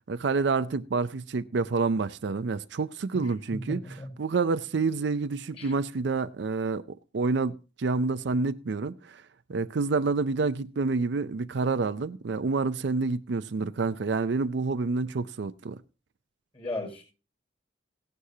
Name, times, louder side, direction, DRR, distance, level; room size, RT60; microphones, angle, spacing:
voice 1, 0.1-9.2 9.5-15.8, right 4 dB, 65° right, 0.5 m, -28 dB
voice 2, 3.7-4.1 5.5-5.7 16.5-17.0, left 2 dB, 30° left, 5.6 m, -36 dB
16.5 x 11.5 x 2.8 m
head